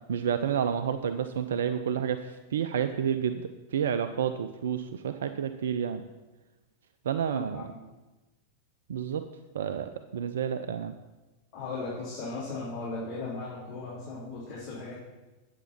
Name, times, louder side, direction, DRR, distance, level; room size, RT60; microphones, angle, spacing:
voice 1, 0.1-6.0 7.0-7.7 8.9-9.2 9.5-10.9, right 8 dB, 65° right, 10 dB, 0.4 m, -30 dB
voice 2, 7.3-7.8 11.5-14.9, left 3 dB, 35° left, -10 dB, 3.4 m, -37 dB
9.0 x 8.1 x 4.3 m, 1.1 s
figure-of-eight pair, 90°, 0 cm